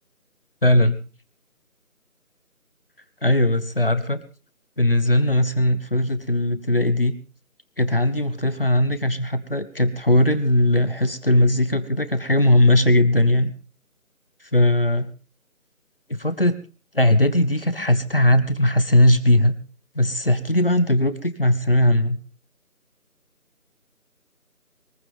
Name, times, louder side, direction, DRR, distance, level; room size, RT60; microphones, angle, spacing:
voice 1, 0.6-1.0 3.2-4.2 4.8-7.2 7.8-13.5 14.5-15.1 16.1-16.6 17.0-19.6 19.9-22.2, left 1 dB, 40° left, 12 dB, 1.3 m, -19 dB
23.0 x 15.0 x 3.6 m, 0.36 s
figure-of-eight pair, 180°, 44 cm